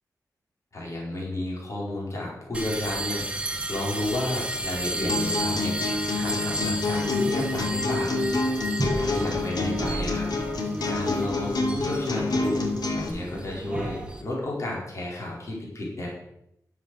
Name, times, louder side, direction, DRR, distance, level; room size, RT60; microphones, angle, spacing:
voice 1, 0.7-5.8 6.1-8.2 8.9-10.3 10.9-12.6 12.9-16.1, left 1 dB, 45° left, -3 dB, 4.4 m, -32 dB
sound 1, 2.5-14.2, right 1 dB, 15° right, 1.3 m, -33 dB
sound 2, 5.1-13.1, left 3 dB, 85° left, 2.4 m, -27 dB
11.0 x 7.5 x 6.5 m, 0.79 s
wide cardioid pair, 175°, 7 cm